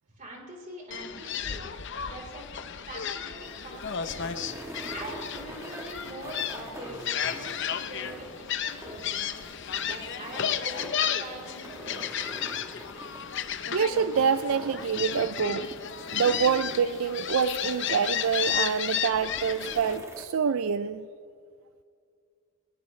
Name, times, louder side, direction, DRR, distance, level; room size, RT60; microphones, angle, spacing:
voice 1, 0.2-1.7 2.0-2.5 2.8-4.4 4.9-9.3 9.8-12.2, right 1 dB, 35° right, -1 dB, 3.9 m, -43 dB
Gull seagull, 0.9-20.0, left 8 dB, 55° left, 0.7 m, -33 dB
sound 1, 3.2-20.2, right 1 dB, 15° right, 1.3 m, -46 dB
voice 2, 13.7-15.7 16.1-21.1, right 6 dB, 65° right, 12 dB, 0.4 m, -26 dB
21.0 x 20.5 x 3.2 m, 2.2 s
head